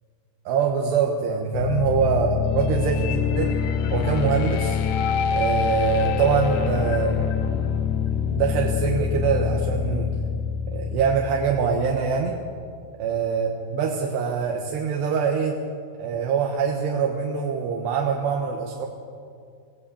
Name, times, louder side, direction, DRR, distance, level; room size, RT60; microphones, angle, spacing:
voice 1, 0.5-3.6 3.9-4.8 5.3-7.2 8.3-10.1 10.7-12.4 13.0-15.6 16.0-18.9, right 6 dB, 65° right, 1 dB, 3.2 m, -24 dB
sound 1, 1.5-12.4, left 7 dB, 75° left, 3.0 m, -25 dB
22.5 x 16.5 x 8.5 m, 2.3 s
omnidirectional pair, 5.7 m